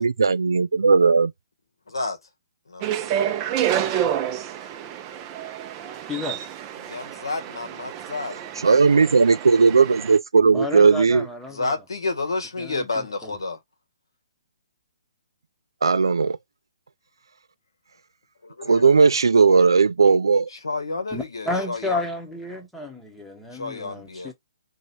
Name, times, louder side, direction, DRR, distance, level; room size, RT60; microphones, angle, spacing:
voice 1, 0.0-1.3 8.6-11.3 15.8-16.4 18.6-20.5, right 5 dB, 80° right, 0.4 m, -17 dB
voice 2, 1.9-2.2 2.7-3.5 6.8-8.8 11.5-13.6 18.4-18.8 20.5-22.0 23.5-24.3, left 3 dB, 85° left, 1.3 m, -30 dB
sound 1, 2.8-10.2, right 10 dB, 25° right, 0.6 m, -29 dB
voice 3, 6.1-6.4 10.5-11.7 12.6-13.3 21.1-24.3, left 2 dB, 5° left, 1.0 m, -32 dB
3.1 x 2.9 x 4.2 m
hypercardioid pair, 140°, 2 cm